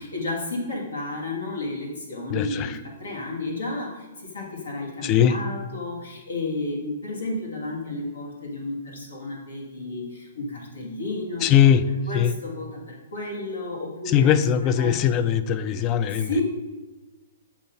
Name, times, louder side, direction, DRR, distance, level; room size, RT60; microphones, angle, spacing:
voice 1, 0.0-11.6 12.1-15.0 16.0-16.4, left 2 dB, 80° left, -1 dB, 1.8 m, -32 dB
voice 2, 2.3-2.8 5.0-5.4 11.4-11.8 12.1-12.3 14.1-16.3, left 9 dB, 30° left, 12 dB, 0.3 m, -20 dB
6.9 x 2.8 x 5.7 m, 1.2 s
hypercardioid pair, 125°, 0 cm